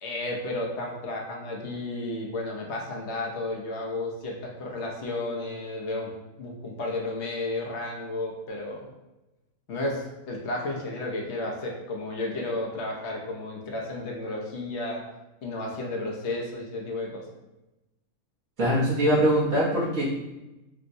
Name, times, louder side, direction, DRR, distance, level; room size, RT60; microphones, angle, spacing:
voice 1, 0.0-6.1 6.4-8.9 9.7-15.0 15.4-17.2, left 2 dB, 60° left, -1 dB, 0.8 m, -32 dB
voice 2, 18.6-20.1, equal, 65° right, -9 dB, 1.3 m, -22 dB
4.4 x 2.0 x 2.5 m, 0.99 s
omnidirectional pair, 1.6 m